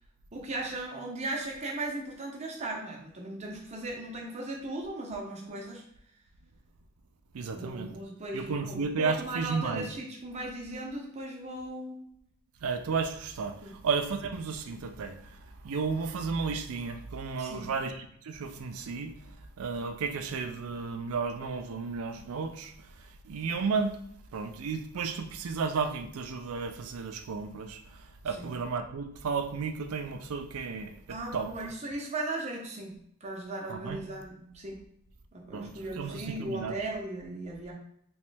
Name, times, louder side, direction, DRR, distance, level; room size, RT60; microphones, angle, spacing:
voice 1, 0.3-5.8 7.5-12.0 13.6-13.8 17.4-17.7 28.2-28.5 31.1-34.8 35.3-37.7, right 2 dB, 30° right, 0 dB, 0.7 m, -37 dB
voice 2, 7.3-7.9 8.3-9.9 12.6-13.6 13.8-15.2 15.6-19.1 19.6-22.7 23.3-24.0 24.3-27.8 28.2-31.5 33.7-34.0 35.5-35.7 36.0-36.8, right 5 dB, 75° right, 8 dB, 0.4 m, -33 dB
3.1 x 3.0 x 3.3 m, 0.70 s
head